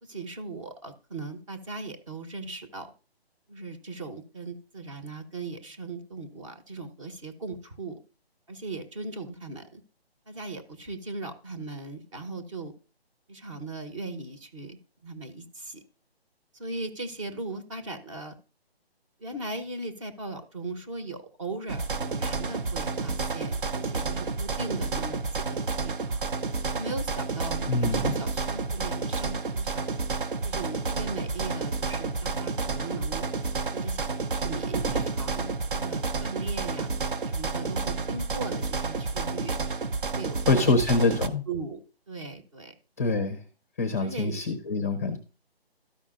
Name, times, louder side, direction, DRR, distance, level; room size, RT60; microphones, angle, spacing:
voice 1, 0.0-2.9 3.5-8.0 8.5-9.8 10.3-12.7 13.3-14.8 15.0-15.8 16.5-18.4 19.2-25.4 25.8-25.9 26.7-29.9 30.4-33.2 33.7-34.0 34.4-36.9 37.3-39.6 40.1-40.9 41.5-41.8 42.1-42.7 44.0-44.4, right 3 dB, 30° right, 7 dB, 1.1 m, -38 dB
sound 1, 21.7-41.3, right 4 dB, 55° right, 0.8 m, -30 dB
voice 2, 27.7-28.1 40.5-41.4 43.0-43.4 43.8-45.2, left 3 dB, 15° left, 7 dB, 0.6 m, -25 dB
13.5 x 5.3 x 2.5 m, 0.34 s
figure-of-eight pair, 155°, 31 cm